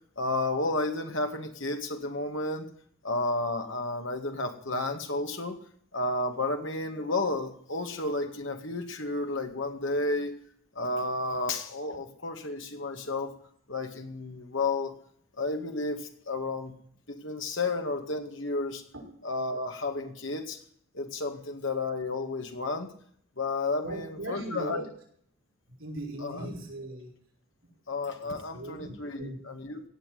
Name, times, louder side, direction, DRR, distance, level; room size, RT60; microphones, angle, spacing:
voice 1, 0.2-2.7 3.0-5.6 5.9-10.4 10.8-13.3 13.7-14.9 15.4-16.7 17.1-18.8 19.2-20.6 20.9-22.9 23.4-24.8 26.2-26.5 27.9-29.8, left 2 dB, 60° left, 5 dB, 2.1 m, -32 dB
voice 2, 23.8-24.9 25.8-27.1 28.2-29.4, right 1 dB, 65° right, -1 dB, 5.4 m, -38 dB
17.5 x 7.3 x 9.3 m, 0.62 s
head